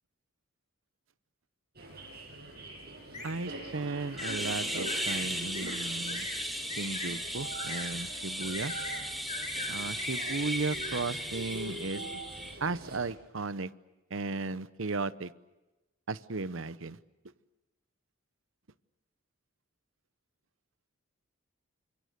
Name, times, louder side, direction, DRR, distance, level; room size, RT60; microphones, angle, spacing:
sound 1, 1.8-13.1, right 2 dB, 50° right, 8.0 m, -44 dB
sound 2, 3.1-3.3 4.2-4.4 4.7-5.2 5.5-5.8 6.1-6.4 6.7-7.1 7.5-7.9 8.4-9.0 9.3-9.7 10.0-10.9, left 3 dB, 35° left, 7.9 m, -40 dB
voice 1, 3.2-6.3 6.8-8.7 9.7-12.0 12.6-13.7 14.1-15.3 16.1-17.0, right 3 dB, 70° right, 15 dB, 0.9 m, -35 dB
sound 3, 4.2-12.5, equal, ahead, 3.0 m, -36 dB
29.5 x 26.0 x 6.8 m, 1.0 s
head